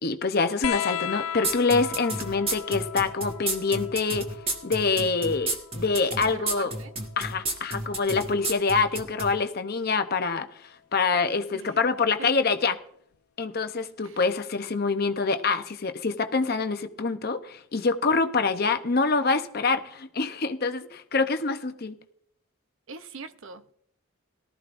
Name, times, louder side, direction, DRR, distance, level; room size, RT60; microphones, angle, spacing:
voice 1, 0.0-4.3 4.6-6.7 7.2-10.5 10.9-12.8 13.4-22.0, left 4 dB, 45° left, 0.7 m, -26 dB
sound 1, 0.6-7.7 9.1-9.9 11.2-11.3, left 10 dB, 85° left, 0.5 m, -37 dB
sound 2, 1.4-9.3, right 2 dB, 25° right, 1.4 m, -30 dB
voice 2, 6.3-6.9 11.5-11.8 12.2-12.3 14.0-14.2 22.9-23.7, right 4 dB, 65° right, 0.7 m, -42 dB
18.5 x 13.0 x 2.5 m
head